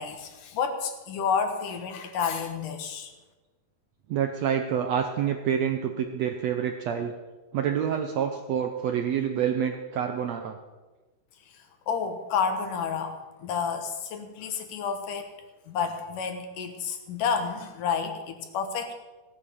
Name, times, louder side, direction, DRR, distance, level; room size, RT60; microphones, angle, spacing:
voice 1, 0.0-3.1 11.9-15.3 15.7-18.9, left 6 dB, 70° left, 6 dB, 2.8 m, -30 dB
voice 2, 4.1-7.1 7.5-10.6, right 8 dB, 75° right, 6 dB, 1.5 m, -27 dB
16.0 x 9.2 x 6.8 m, 1.2 s
omnidirectional pair, 4.0 m